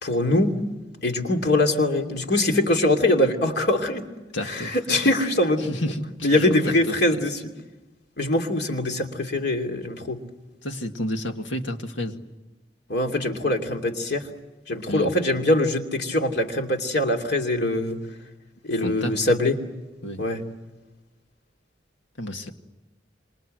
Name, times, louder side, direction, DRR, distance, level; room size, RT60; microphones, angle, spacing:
voice 1, 0.0-0.6 1.0-4.0 4.4-5.8 6.2-7.4 8.2-10.2 12.9-14.3 14.7-18.0 18.6-19.6 20.2-20.4, left 1 dB, 60° left, 3 dB, 2.8 m, -23 dB
voice 2, 4.3-4.7 5.6-6.5 6.9-7.2 10.6-12.2 14.9-15.1 18.8-19.1 20.0-20.2 22.2-22.5, left 1 dB, 90° left, 5 dB, 2.0 m, -30 dB
27.5 x 26.5 x 7.8 m, 1.1 s
head